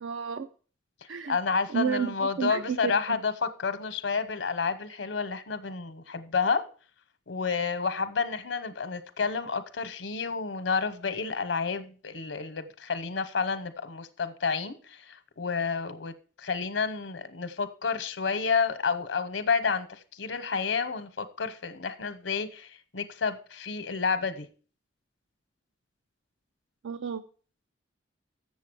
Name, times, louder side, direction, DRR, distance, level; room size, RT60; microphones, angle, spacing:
voice 1, 0.0-0.5 1.1-1.4 1.7-3.2 26.8-27.2, right 7 dB, 85° right, 0.5 m, -31 dB
voice 2, 1.3-6.7 7.3-16.1 16.4-24.5, left 5 dB, 80° left, 0.9 m, -30 dB
7.5 x 7.2 x 6.2 m
head